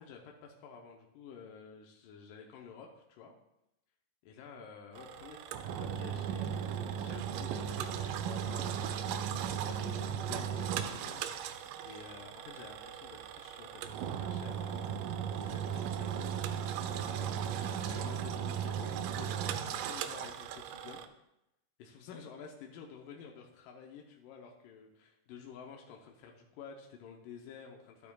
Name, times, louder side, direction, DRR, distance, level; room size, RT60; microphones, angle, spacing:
voice 1, 0.0-3.3 4.2-16.3 16.9-21.0 21.8-28.1, left 6 dB, 85° left, 1 dB, 2.4 m, -51 dB
Engine, 5.0-21.1, right 8 dB, 85° right, 2.3 m, -37 dB
12.0 x 9.5 x 2.3 m, 0.88 s
omnidirectional pair, 3.8 m